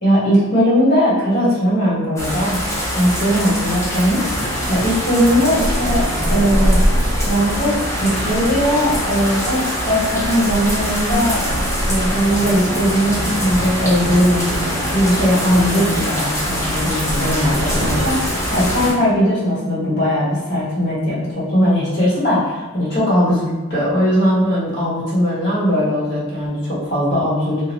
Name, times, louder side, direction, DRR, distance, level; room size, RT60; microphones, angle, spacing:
voice 1, 0.0-2.6 2.9-4.2 4.7-6.8 7.2-9.6 9.8-11.4 11.9-14.7 14.9-16.4 16.6-27.6, equal, 50° left, -8 dB, 1.2 m, -19 dB
sound 1, 2.2-18.9, equal, 15° left, 0.4 m, -22 dB
2.7 x 2.0 x 2.9 m, 1.2 s
head